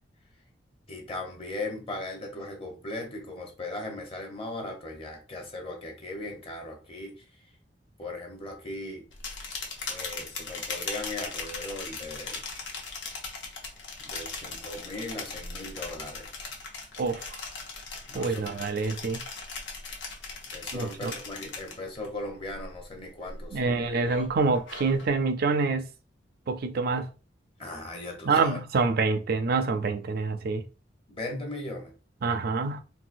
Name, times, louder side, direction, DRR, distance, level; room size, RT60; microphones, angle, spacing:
voice 1, 0.9-7.2 8.0-9.1 9.9-12.4 14.0-16.3 18.1-18.6 20.5-23.9 27.6-28.6 31.1-31.9, left 2 dB, 30° left, 0.9 m, -38 dB
sound 1, 9.1-22.1 22.4-22.8 23.3-25.1, left 4 dB, 85° left, 0.9 m, -39 dB
voice 2, 17.0-17.4 18.1-19.2 20.7-21.1 23.5-25.9 26.5-27.1 28.3-30.6 32.2-32.8, right 4 dB, 55° right, 0.4 m, -26 dB
3.9 x 2.3 x 2.5 m
head